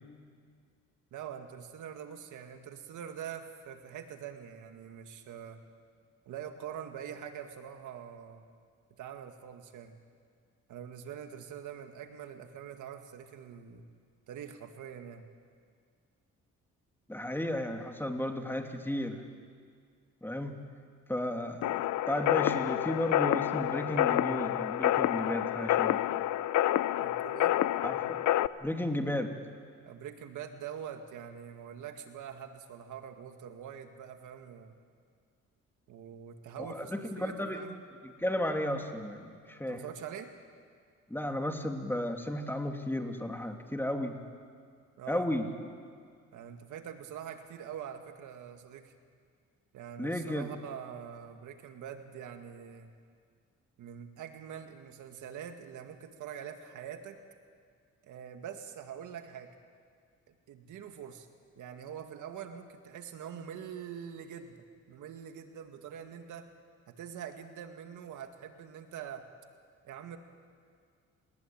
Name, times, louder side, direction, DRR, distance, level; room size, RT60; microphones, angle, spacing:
voice 1, 1.1-5.6 6.3-8.5 9.0-10.0 10.7-13.9 14.3-15.3 27.0-27.5 29.9-34.7 35.9-37.8 39.7-40.3 45.0-45.3 46.3-48.9 49.7-52.9 53.8-57.2 58.0-59.5 60.3-61.3 61.6-66.5 66.9-69.3 69.8-70.2, right 8 dB, 80° right, 6 dB, 2.2 m, -44 dB
voice 2, 17.1-19.2 20.2-20.6 21.1-26.2 27.8-28.0 28.6-29.3 36.6-37.6 38.2-39.8 41.1-44.2 45.1-45.5 50.0-50.5, left 1 dB, 5° left, 4 dB, 2.8 m, -34 dB
sound 1, 21.6-28.5, left 13 dB, 75° left, 0.7 m, -28 dB
30.0 x 20.5 x 8.9 m, 2.1 s
cardioid pair, 90°, 30 cm